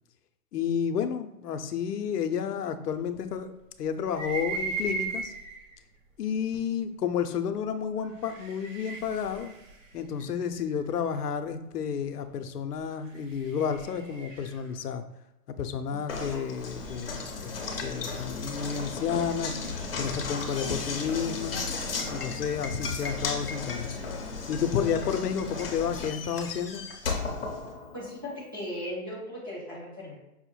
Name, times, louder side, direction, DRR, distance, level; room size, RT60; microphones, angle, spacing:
voice 1, 0.5-3.5 3.8-5.3 6.2-9.5 9.9-15.0 15.6-17.5 17.8-19.6 20.0-21.7 22.1-23.9 24.5-26.8, left 7 dB, 90° left, 8 dB, 0.6 m, -31 dB
sound 1, 4.0-5.7 6.5-6.6 8.0-10.9 12.9-14.7, right 4 dB, 55° right, 0.7 m, -37 dB
voice 2, 15.9-16.6 27.9-30.1, left 1 dB, 15° right, -8 dB, 0.5 m, -38 dB
Knock, 16.1-28.2, left 4 dB, 40° left, 0.6 m, -35 dB
5.4 x 2.1 x 3.0 m, 0.93 s
hypercardioid pair, 160°, 46 cm